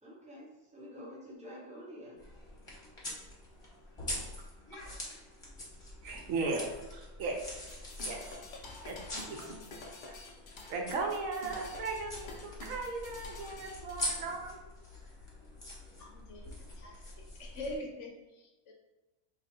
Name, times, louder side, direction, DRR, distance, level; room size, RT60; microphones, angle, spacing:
voice 1, 0.0-2.2 3.6-3.7 4.1-4.2, equal, 10° right, -5 dB, 0.4 m, -49 dB
sound 1, 2.2-17.8, left 1 dB, 25° left, 0.8 m, -44 dB
voice 2, 6.0-7.4 8.0-8.4 8.8-9.4 10.1-10.2 10.7-14.6, right 3 dB, 75° right, 1 dB, 1.0 m, -37 dB
sound 2, 7.6-14.2, left 2 dB, 85° left, 0.4 m, -48 dB
voice 3, 16.0-18.7, left 1 dB, 65° left, 1 dB, 0.8 m, -44 dB
2.6 x 2.5 x 4.2 m, 1.1 s
omnidirectional pair, 1.5 m